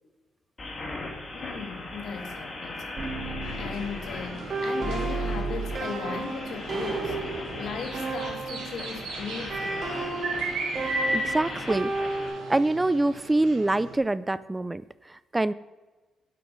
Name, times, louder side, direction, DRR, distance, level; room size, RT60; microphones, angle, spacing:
sound 1, 0.6-12.3, left 2 dB, 35° left, 2.8 m, -39 dB
voice 1, 1.3-3.0 3.6-7.2 7.6-9.9, left 5 dB, 65° left, 1.3 m, -37 dB
sound 2, 3.0-8.9 9.5-12.7, right 3 dB, 50° right, 3.3 m, -33 dB
sound 3, 3.4-14.0, right 2 dB, 80° right, 2.4 m, -36 dB
voice 2, 11.1-12.2 12.5-15.5, right 2 dB, 15° right, 0.3 m, -25 dB
8.0 x 7.9 x 5.1 m
cardioid pair, 90°, 0 cm